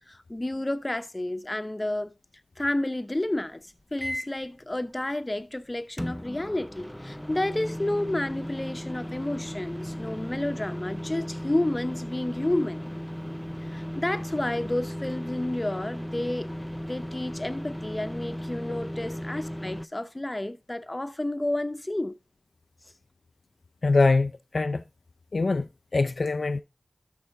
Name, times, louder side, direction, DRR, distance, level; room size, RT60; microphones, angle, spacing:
voice 1, 0.1-2.1 2.6-3.6 3.9-12.8 13.6-16.5 16.9-22.1, left 1 dB, 25° left, 0.8 m, -30 dB
sound 1, 4.0-4.4 6.0-19.9, equal, 5° left, 0.4 m, -36 dB
voice 2, 23.8-24.8 25.3-26.6, left 3 dB, 65° left, 0.4 m, -24 dB
13.0 x 5.6 x 3.5 m
cardioid pair, 45°, 0 cm